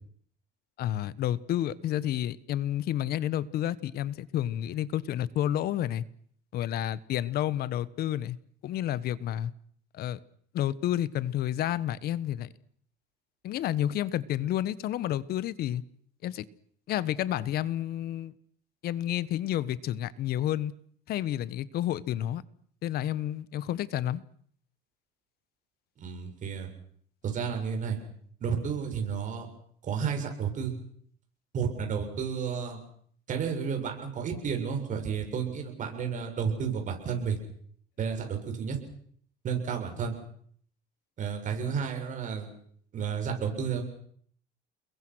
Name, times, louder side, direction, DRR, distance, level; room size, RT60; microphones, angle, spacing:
voice 1, 0.8-6.0 6.5-8.4 8.6-9.5 9.9-10.2 10.5-12.5 13.4-15.8 16.2-16.4 16.9-18.3 18.8-20.7 21.1-22.4 22.8-24.2, left 12 dB, 55° left, 1.3 m, -30 dB
voice 2, 26.0-26.7 27.2-28.0 28.4-29.5 29.8-30.7 31.5-32.8 33.3-37.4 38.0-38.8 39.4-40.1 41.2-42.5 42.9-43.8, right 6 dB, 45° right, 7.3 m, -31 dB
30.0 x 22.0 x 6.4 m
cardioid pair, 115°, 19 cm